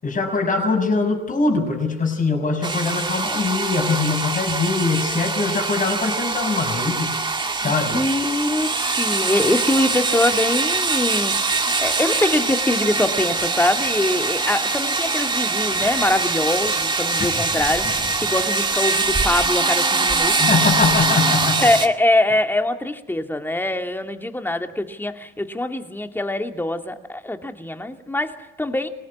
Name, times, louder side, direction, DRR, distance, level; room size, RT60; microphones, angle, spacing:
voice 1, 0.0-7.2 7.6-8.0 20.4-21.7, left 4 dB, 40° left, 4 dB, 6.4 m, -22 dB
sound 1, 2.6-21.9, right 3 dB, 25° right, 2.1 m, -23 dB
voice 2, 7.6-20.5 21.6-28.9, left 1 dB, 10° left, 5 dB, 2.6 m, -23 dB
25.5 x 19.5 x 9.8 m, 0.87 s
cardioid pair, 90°, 20 cm